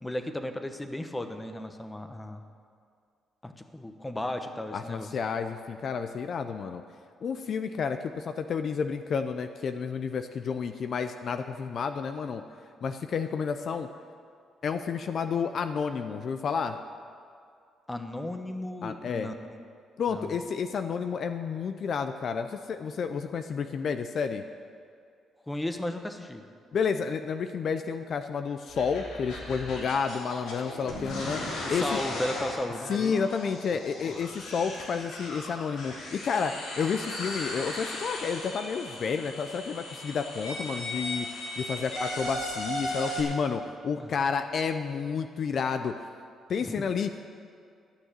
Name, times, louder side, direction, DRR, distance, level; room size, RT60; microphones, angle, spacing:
voice 1, 0.0-2.4 3.4-5.1 17.9-19.3 20.1-20.3 25.5-26.4 31.6-33.1 44.0-44.1 46.6-46.7, left 1 dB, 15° left, 7 dB, 1.0 m, -35 dB
voice 2, 4.7-6.8 7.2-12.4 12.8-13.9 14.6-16.8 18.8-19.3 20.0-24.4 26.7-32.0 32.9-41.3 41.6-46.0 46.5-47.3, left 6 dB, 55° left, 8 dB, 0.6 m, -30 dB
sound 1, 28.7-43.2, left 1 dB, 90° left, 3.1 m, -37 dB
13.0 x 6.5 x 9.0 m, 2.3 s
cardioid pair, 90°, 0 cm